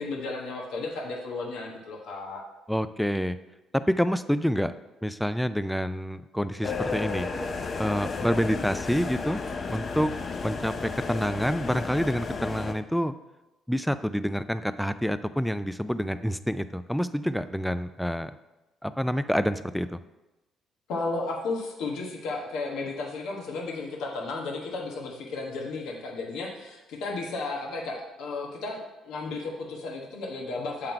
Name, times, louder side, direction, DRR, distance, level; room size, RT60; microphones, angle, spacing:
voice 1, 0.0-2.4 20.9-30.9, left 3 dB, 75° left, -1 dB, 1.2 m, -34 dB
voice 2, 2.7-3.4 3.7-4.7 5.0-7.3 7.8-9.4 9.7-10.1 10.4-13.1 13.7-18.3 18.8-20.0, equal, 5° left, 12 dB, 0.4 m, -27 dB
sound 1, 6.6-12.7, left 4 dB, 45° left, 0.6 m, -33 dB
7.6 x 3.8 x 4.6 m, 1.0 s
supercardioid pair, 60°, 0 cm